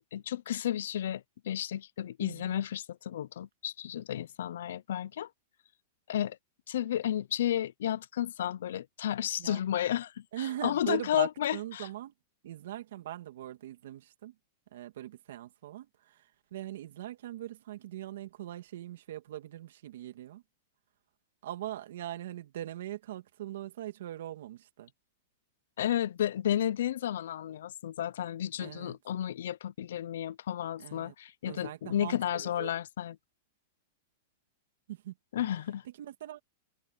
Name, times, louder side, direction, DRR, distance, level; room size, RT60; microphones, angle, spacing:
voice 1, 0.1-5.3 6.1-6.4 6.7-10.1 10.6-11.9 25.8-33.1 35.3-35.8, left 11 dB, 80° left, 0.6 m, -32 dB
voice 2, 2.2-2.6 9.4-9.6 10.3-12.1 12.4-14.3 14.7-20.4 21.4-24.9 28.6-29.0 30.8-31.1 31.4-32.7 34.9-35.1 35.8-36.4, right 13 dB, 75° right, 2.5 m, -41 dB
open air
supercardioid pair, 155°, 0 cm